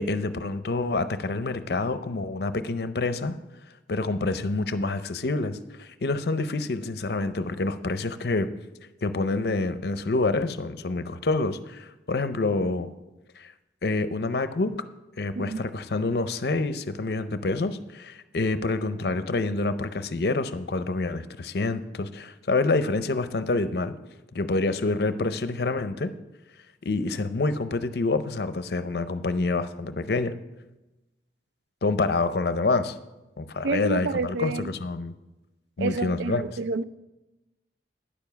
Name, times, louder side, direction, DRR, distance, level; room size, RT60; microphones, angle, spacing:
voice 1, 0.0-3.4 3.9-8.5 9.0-12.9 13.4-13.5 13.8-14.8 15.2-23.9 24.3-26.1 26.8-30.4 31.8-33.0 33.4-35.1 35.8-36.4, left 3 dB, 60° left, 0.6 m, -27 dB
voice 2, 33.6-34.7 35.8-36.8, right 3 dB, 75° right, 0.4 m, -29 dB
10.0 x 7.0 x 5.7 m
head